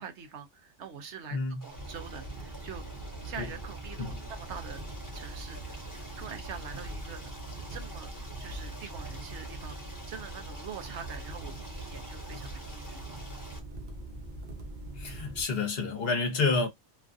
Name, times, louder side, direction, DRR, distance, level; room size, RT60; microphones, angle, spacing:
voice 1, 0.0-2.8 3.2-4.8 5.1-7.3 7.7-9.8 10.1-13.0, right 6 dB, 75° right, 1.1 m, -44 dB
voice 2, 1.3-1.6 3.4-3.5 4.0-4.2 15.0-16.7, left 4 dB, 60° left, 1.0 m, -29 dB
Stream, 1.6-13.6, equal, 15° left, 1.2 m, -48 dB
sound 1, 1.7-15.4, right 2 dB, 45° right, 0.8 m, -42 dB
3.0 x 2.4 x 2.4 m
omnidirectional pair, 1.2 m